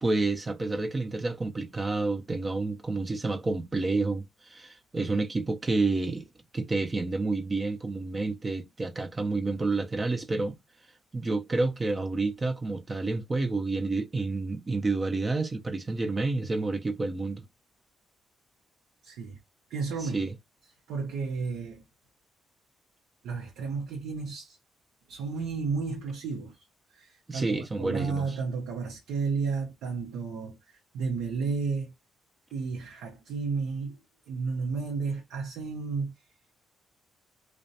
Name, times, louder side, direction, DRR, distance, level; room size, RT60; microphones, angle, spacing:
voice 1, 0.0-6.3 6.5-10.6 11.1-17.4 20.0-20.3 27.3-28.4, right 3 dB, 25° right, 0.4 m, -29 dB
voice 2, 19.0-19.4 19.7-20.2 20.9-21.8 23.2-24.6 25.1-26.6 26.9-31.9 32.5-34.0 34.3-36.1, right 4 dB, 85° right, 0.6 m, -32 dB
2.4 x 2.1 x 2.6 m
cardioid pair, 90°, 0 cm